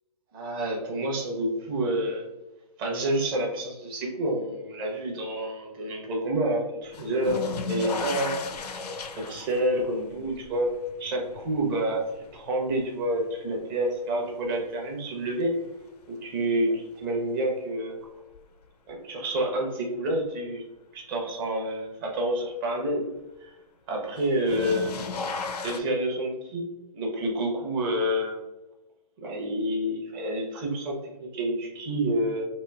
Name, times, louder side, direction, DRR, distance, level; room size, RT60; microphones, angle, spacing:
voice 1, 0.3-2.3 2.8-8.4 9.2-10.7 11.0-12.0 12.3-15.5 16.1-18.0 18.9-20.6 20.9-23.0 23.4-23.5 23.9-25.1 25.6-26.6 26.9-28.4 29.2-32.4, right 1 dB, 35° right, -1 dB, 0.8 m, -28 dB
sound 1, 6.9-14.0 14.4-15.1 16.7-16.8 18.3-18.4 24.2-25.8, left 4 dB, 75° left, 0.4 m, -35 dB
3.0 x 2.3 x 2.3 m, 0.98 s
figure-of-eight pair, 130°, 20 cm